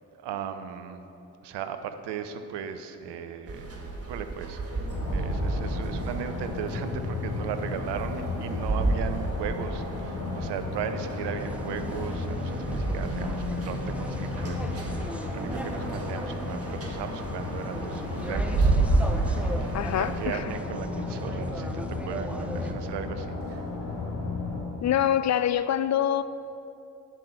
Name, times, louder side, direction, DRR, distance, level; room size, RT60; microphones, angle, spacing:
voice 1, 0.2-1.0 1.4-3.7 4.1-4.8 5.1-18.7 19.3-23.6, right 8 dB, 70° right, 9 dB, 0.7 m, -37 dB
sound 1, 3.5-20.4, right 2 dB, 35° right, 1.5 m, -31 dB
sound 2, 4.9-24.6, left 2 dB, 80° left, 2.0 m, -34 dB
sound 3, 11.4-22.7, equal, 5° right, 0.8 m, -40 dB
voice 2, 19.7-20.4 24.8-26.2, left 10 dB, 40° left, 14 dB, 0.4 m, -25 dB
9.4 x 4.5 x 6.5 m, 2.9 s
hypercardioid pair, 40°, 43 cm